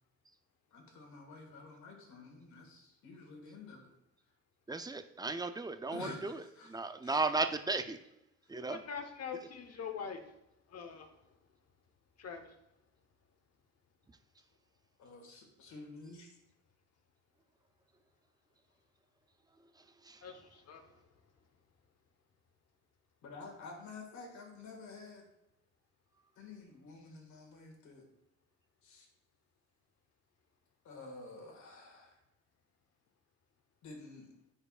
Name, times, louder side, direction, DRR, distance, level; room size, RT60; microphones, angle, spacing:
voice 1, 0.7-3.9 5.9-7.2 8.4-8.5 15.0-16.4 23.2-25.3 26.4-28.1 28.8-29.1 30.8-32.2 33.8-34.3, left 3 dB, 70° left, 1 dB, 1.8 m, -50 dB
voice 2, 4.7-6.4 6.6-8.0 8.5-8.8 20.0-20.2, right 3 dB, 15° right, 8 dB, 0.4 m, -35 dB
voice 3, 8.7-10.2 10.7-11.1 12.2-12.5 20.2-20.9, left 6 dB, 55° left, 6 dB, 1.0 m, -43 dB
9.6 x 4.5 x 2.4 m, 0.86 s
cardioid pair, 90°, 30 cm